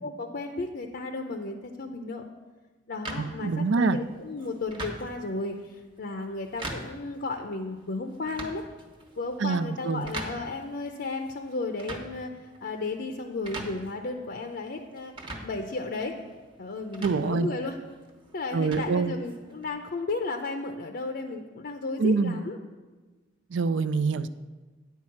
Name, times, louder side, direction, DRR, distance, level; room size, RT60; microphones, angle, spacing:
voice 1, 0.0-2.2 2.9-8.6 9.2-15.1 15.4-16.2 16.6-17.8 18.3-22.6, left 3 dB, 60° left, 4 dB, 0.6 m, -34 dB
sound 1, 3.0-19.7, right 2 dB, 30° right, 1.1 m, -43 dB
voice 2, 3.2-4.0 9.4-10.0 17.0-17.5 18.5-19.1 22.0-22.4 23.5-24.3, right 4 dB, 75° right, 14 dB, 0.4 m, -25 dB
9.5 x 4.6 x 7.2 m, 1.3 s
head